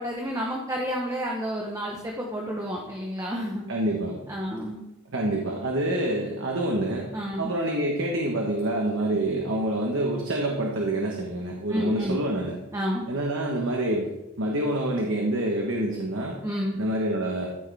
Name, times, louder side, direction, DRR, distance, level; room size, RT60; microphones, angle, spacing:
voice 1, 0.0-3.7 4.3-4.8 7.1-7.5 11.7-12.2 12.7-13.1 16.4-16.8, equal, 15° right, -1 dB, 1.1 m, -30 dB
voice 2, 3.7-4.2 5.1-7.1 7.4-12.6 13.1-14.1 14.4-16.3 16.8-17.5, right 1 dB, 60° right, 0 dB, 1.3 m, -27 dB
14.0 x 6.4 x 3.5 m, 0.97 s
head